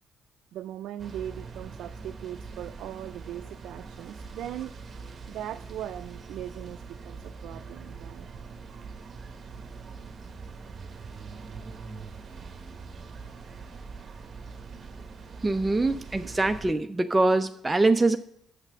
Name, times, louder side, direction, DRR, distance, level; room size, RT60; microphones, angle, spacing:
voice 1, 0.5-4.7 5.3-8.3 15.8-15.9, right 11 dB, 85° right, 8 dB, 0.3 m, -39 dB
sound 1, 1.0-16.7, right 4 dB, 45° right, 1.2 m, -43 dB
voice 2, 15.4-18.2, right 2 dB, 15° right, 7 dB, 0.4 m, -23 dB
6.7 x 5.8 x 6.8 m, 0.68 s
cardioid pair, 90°, 0 cm